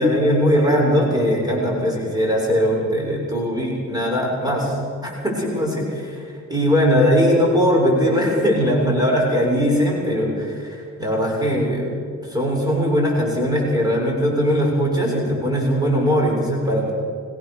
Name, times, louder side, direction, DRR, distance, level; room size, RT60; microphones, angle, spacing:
voice 1, 0.0-16.9, equal, 15° right, -2 dB, 7.3 m, -20 dB
22.5 x 18.0 x 6.8 m, 2.3 s
cardioid pair, 90°, 30 cm